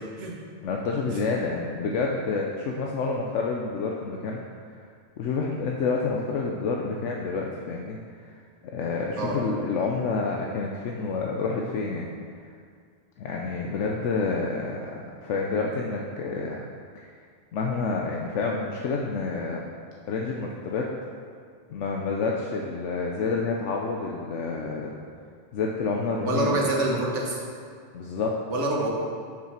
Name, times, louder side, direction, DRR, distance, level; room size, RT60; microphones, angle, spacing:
voice 1, 0.6-4.9 5.2-8.3 8.6-12.1 13.2-16.6 16.9-17.1 17.5-19.7 20.1-20.9 21.7-24.9 25.5-26.6 27.9-28.3, left 4 dB, 85° left, -1 dB, 1.0 m, -29 dB
voice 2, 26.2-27.4 28.5-28.9, right 2 dB, 80° right, -2 dB, 1.7 m, -26 dB
7.3 x 6.1 x 5.8 m, 2.1 s
omnidirectional pair, 1.2 m